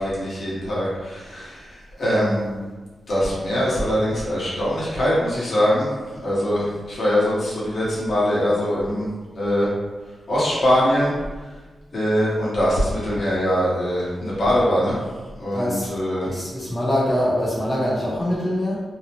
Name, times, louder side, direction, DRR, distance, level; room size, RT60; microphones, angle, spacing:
voice 1, 0.0-1.6 2.0-2.5 3.1-5.9 6.2-9.0 9.4-9.7 10.3-11.1 11.9-15.0 15.4-16.3, equal, 50° left, -8 dB, 0.9 m, -22 dB
voice 2, 15.5-15.9 16.2-18.8, left 1 dB, 5° left, -9 dB, 0.6 m, -23 dB
2.7 x 2.0 x 2.8 m, 1.3 s
wide cardioid pair, 165°, 0 cm